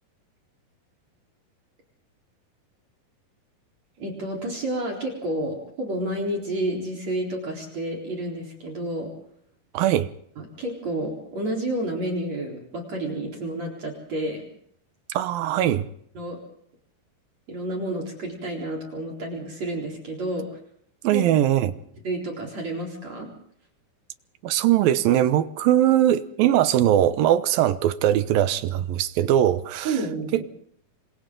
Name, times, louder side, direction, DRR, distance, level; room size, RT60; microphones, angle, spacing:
voice 1, 4.0-9.1 10.6-14.4 16.1-16.4 17.5-20.5 21.1-21.2 22.0-23.3 29.8-30.4, right 1 dB, 45° right, 5.1 m, -30 dB
voice 2, 9.7-10.1 15.1-15.9 21.0-21.7 24.4-30.0 30.3-30.4, right 12 dB, 75° right, 2.6 m, -21 dB
28.0 x 25.5 x 3.9 m
omnidirectional pair, 4.4 m